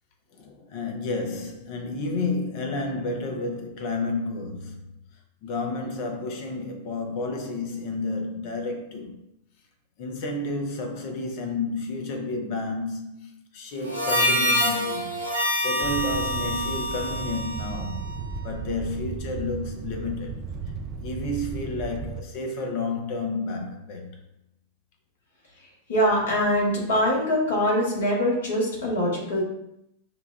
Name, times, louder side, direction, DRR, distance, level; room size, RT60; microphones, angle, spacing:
voice 1, 0.3-5.0 5.4-9.2 10.0-15.2 15.6-18.1 18.4-20.5 21.0-24.2, left 2 dB, 45° left, 0.7 m, -31 dB
Harmonica, 13.8-18.5, equal, 90° left, 0.7 m, -26 dB
sound 1, 15.8-22.2, right 4 dB, 30° right, 0.3 m, -35 dB
voice 2, 25.9-29.4, equal, 65° left, 1.2 m, -23 dB
5.7 x 2.3 x 2.3 m
figure-of-eight pair, 90°, 0 cm